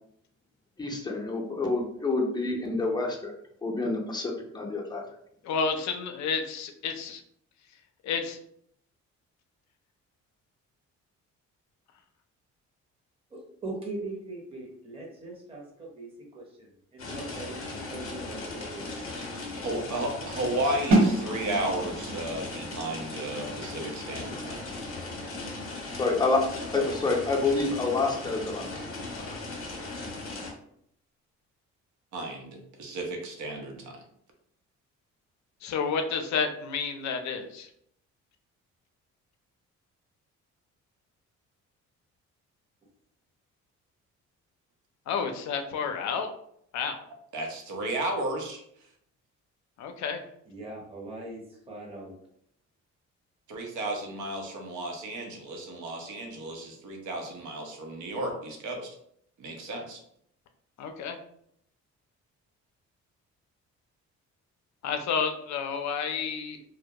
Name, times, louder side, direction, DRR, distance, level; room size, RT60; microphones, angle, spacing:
voice 1, 0.8-3.4 3.6-5.0 25.9-26.5 26.7-28.6 29.2-29.3, left 3 dB, 15° left, 0 dB, 0.5 m, -28 dB
voice 2, 5.4-7.2 8.0-8.4 35.6-37.7 45.1-46.3 46.7-47.0 49.8-50.2 60.8-61.2 64.8-66.7, left 6 dB, 70° left, 6 dB, 0.5 m, -30 dB
voice 3, 13.3-18.9 50.5-52.1, right 2 dB, 20° right, -3 dB, 0.7 m, -41 dB
sound 1, 17.0-30.5, left 2 dB, 45° left, 0.8 m, -38 dB
voice 4, 19.6-24.6 32.1-34.0 47.3-48.6 53.5-58.9 59.4-60.0, right 1 dB, 75° right, 3 dB, 0.7 m, -33 dB
sound 2, 20.9-26.6, right 2 dB, 45° right, 1.2 m, -30 dB
2.1 x 2.1 x 2.7 m, 0.69 s
cardioid pair, 90°, 30 cm